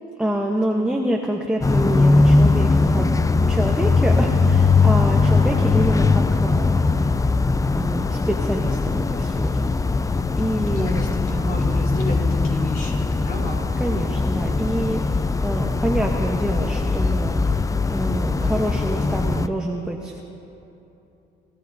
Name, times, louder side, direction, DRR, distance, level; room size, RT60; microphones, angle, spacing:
voice 1, 0.2-7.1 7.7-9.7 10.4-11.0 13.8-17.6 17.9-20.2, right 1 dB, 5° right, 0 dB, 1.0 m, -27 dB
sound 1, 1.6-19.5, left 3 dB, 15° left, 0.4 m, -20 dB
voice 2, 10.7-13.6, left 1 dB, 45° left, -2 dB, 3.8 m, -32 dB
23.5 x 15.0 x 2.7 m, 2.9 s
cardioid pair, 90°, 20 cm